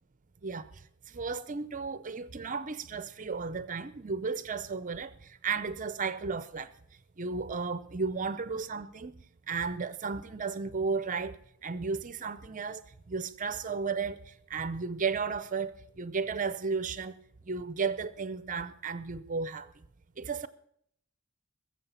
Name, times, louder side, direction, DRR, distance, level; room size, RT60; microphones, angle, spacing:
voice 1, 0.4-6.7 7.2-9.2 9.5-17.2 17.5-19.7 20.2-20.5, right 5 dB, 40° right, 0.6 m, -34 dB
21.0 x 7.5 x 5.6 m
head